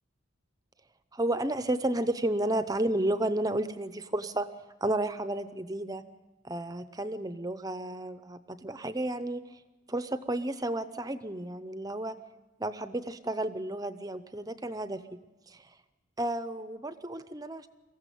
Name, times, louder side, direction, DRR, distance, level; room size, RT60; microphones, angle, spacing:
voice 1, 1.1-4.5 4.8-6.0 6.4-9.6 9.9-12.2 12.6-15.2 15.5-15.7 16.2-17.7, right 1 dB, 20° right, 12 dB, 0.7 m, -32 dB
23.0 x 15.5 x 9.3 m, 1.1 s
head